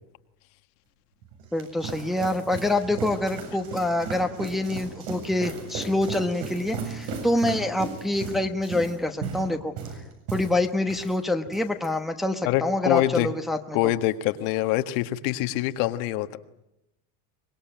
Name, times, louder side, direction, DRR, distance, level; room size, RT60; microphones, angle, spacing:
sound 1, 1.2-11.2 11.5-11.9, right 5 dB, 80° right, 7.9 m, -36 dB
voice 1, 1.5-9.7 10.3-13.8, left 1 dB, ahead, 5 dB, 1.0 m, -26 dB
voice 2, 12.4-13.3 13.7-16.4, left 15 dB, 70° left, 9 dB, 1.6 m, -25 dB
24.0 x 21.5 x 9.0 m, 0.86 s
cardioid pair, 155°, 45 cm